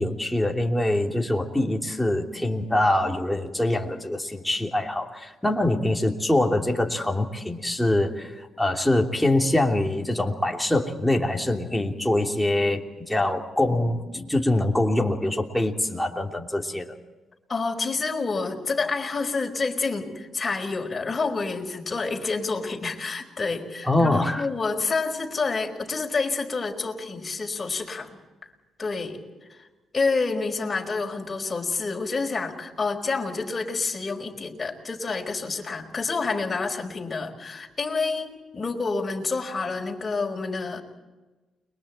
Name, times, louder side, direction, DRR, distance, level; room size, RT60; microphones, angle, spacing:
voice 1, 0.0-16.9 23.9-24.4, left 1 dB, 5° left, 1 dB, 3.1 m, -24 dB
voice 2, 17.5-28.1 28.8-29.2 29.5-29.6 29.9-40.8, left 4 dB, 30° left, 1 dB, 5.2 m, -28 dB
30.0 x 23.5 x 4.5 m, 1.1 s
cardioid pair, 100°, 0 cm